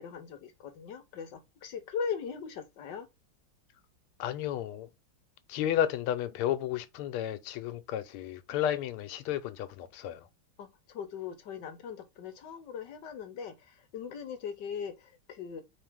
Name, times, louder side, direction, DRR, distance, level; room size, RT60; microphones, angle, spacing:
voice 1, 0.0-3.1 10.6-15.6, left 6 dB, 65° left, 1.3 m, -39 dB
voice 2, 4.2-4.9 5.5-10.3, left 11 dB, 90° left, 1.6 m, -32 dB
4.5 x 3.2 x 3.4 m
omnidirectional pair, 2.3 m